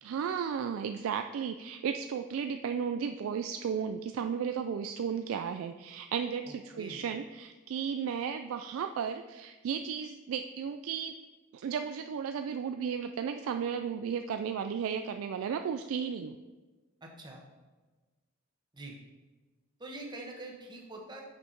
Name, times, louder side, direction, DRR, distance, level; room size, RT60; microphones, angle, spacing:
voice 1, 0.0-11.1 11.5-16.4, right 7 dB, 90° right, 7 dB, 0.3 m, -34 dB
voice 2, 6.5-7.0 17.0-17.4 18.7-19.0 19.8-21.2, right 2 dB, 20° right, 0 dB, 1.1 m, -44 dB
6.4 x 5.6 x 4.5 m, 1.3 s
head